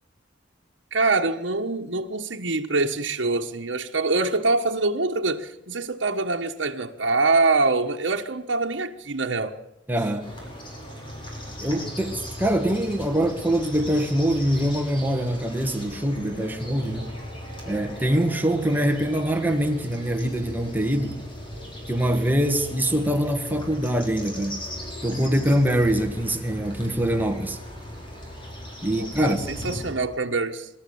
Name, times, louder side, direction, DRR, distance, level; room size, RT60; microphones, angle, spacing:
voice 1, 0.9-9.6 29.0-30.7, right 3 dB, 75° right, 1.4 m, -24 dB
voice 2, 9.9-10.3 11.6-17.1 17.7-21.2 21.9-24.6 25.0-27.6 28.8-29.4, right 1 dB, 10° right, 1.9 m, -24 dB
sound 1, 10.2-29.9, equal, 30° left, 5.7 m, -38 dB
25.0 x 13.0 x 8.6 m
head